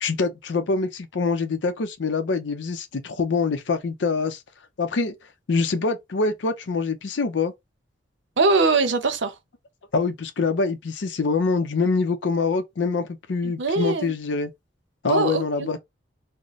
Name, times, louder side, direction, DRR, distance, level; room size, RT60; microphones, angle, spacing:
voice 1, 0.0-4.4 4.8-5.1 5.5-7.5 9.9-14.5 15.0-15.8, left 4 dB, 75° left, 0.5 m, -25 dB
voice 2, 8.4-9.3 13.4-14.1 15.0-15.8, right 3 dB, 80° right, 0.7 m, -22 dB
3.9 x 2.0 x 3.0 m
head